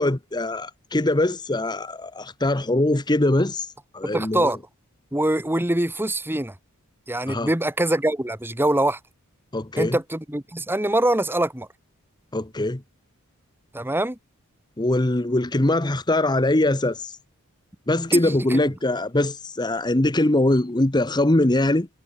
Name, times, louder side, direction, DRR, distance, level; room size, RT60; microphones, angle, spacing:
voice 1, 0.0-4.6 7.3-7.5 9.5-10.0 12.3-12.8 14.8-17.2 17.9-21.9, left 1 dB, 20° left, 1.0 m, -22 dB
voice 2, 4.0-4.6 5.1-6.5 7.1-9.0 9.8-11.7 13.7-14.2 18.1-18.6, right 1 dB, 10° right, 1.3 m, -24 dB
head